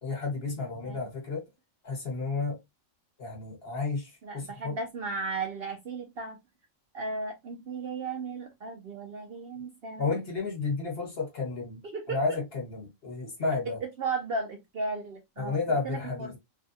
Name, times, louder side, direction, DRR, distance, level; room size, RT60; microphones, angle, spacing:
voice 1, 0.0-1.5 1.8-2.6 3.2-4.8 10.0-11.8 12.1-13.8 15.4-16.3, left 4 dB, 45° left, 1.5 m, -32 dB
voice 2, 4.2-6.4 6.9-10.1 11.8-12.4 13.6-15.6 15.8-16.3, right 3 dB, 60° right, 0.7 m, -35 dB
3.3 x 2.2 x 2.6 m
omnidirectional pair, 1.4 m